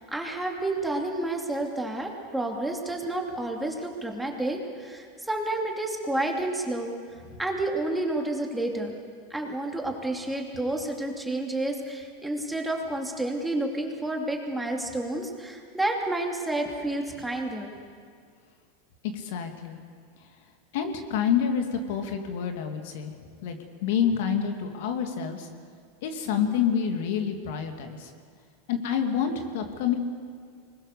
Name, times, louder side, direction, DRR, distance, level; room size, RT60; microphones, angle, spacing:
voice 1, 0.0-6.9 7.4-8.9 9.3-17.8, right 2 dB, 5° right, 1 dB, 2.9 m, -30 dB
voice 2, 19.0-19.8 20.7-23.1 23.4-25.5 26.0-28.1 28.7-30.0, left 8 dB, 70° left, 5 dB, 2.5 m, -28 dB
24.5 x 21.0 x 6.8 m, 2.1 s
hypercardioid pair, 115°, 0 cm